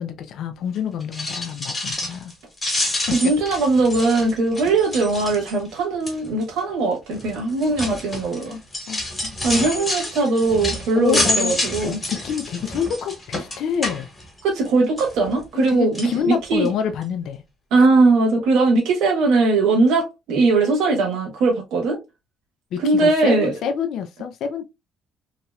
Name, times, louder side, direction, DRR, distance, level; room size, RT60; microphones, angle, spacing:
voice 1, 0.0-2.3 3.2-3.3 8.9-9.4 9.8-9.9 10.9-11.5 11.8-14.1 15.5-17.4 17.8-17.9 22.7-24.6, left 7 dB, 60° left, 0.4 m, -27 dB
sound 1, 1.0-2.3 2.6-5.7 6.1-6.4 7.1-14.7 15.0-15.7 15.9-16.1 16.7-16.8 17.0-17.1, left 1 dB, 15° left, 1.2 m, -28 dB
voice 2, 3.1-8.6 9.4-12.0 14.4-16.7 17.7-22.0 22.8-23.5, right 3 dB, 70° right, 1.3 m, -20 dB
2.9 x 2.8 x 2.2 m
cardioid pair, 155°, 0 cm